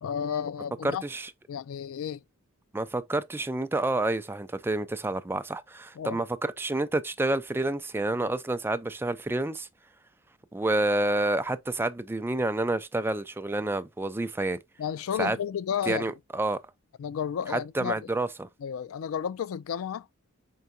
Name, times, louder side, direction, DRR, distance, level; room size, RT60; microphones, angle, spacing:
voice 1, 0.0-1.0 1.5-2.2 6.0-6.2 14.8-16.1 17.0-17.9 18.6-20.1, left 8 dB, 75° left, 0.3 m, -32 dB
voice 2, 0.8-1.3 2.7-9.7 10.5-14.6 15.2-15.4 15.9-16.6 17.5-18.5, right 2 dB, 10° right, 0.4 m, -29 dB
4.7 x 4.4 x 2.6 m
head